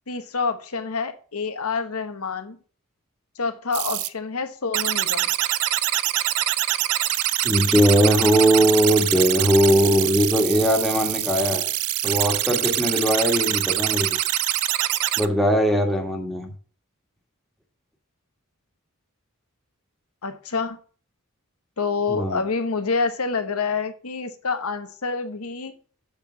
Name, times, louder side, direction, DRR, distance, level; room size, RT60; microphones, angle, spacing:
voice 1, 0.1-2.6 3.4-5.3 20.2-20.8 21.8-25.7, left 4 dB, 80° left, 1.1 m, -27 dB
sound 1, 3.7-4.1 4.7-15.3, right 14 dB, 80° right, 0.5 m, -24 dB
voice 2, 7.4-11.7 12.0-14.1 15.2-16.5 22.1-22.4, equal, ahead, 1.6 m, -20 dB
7.3 x 4.8 x 7.2 m
head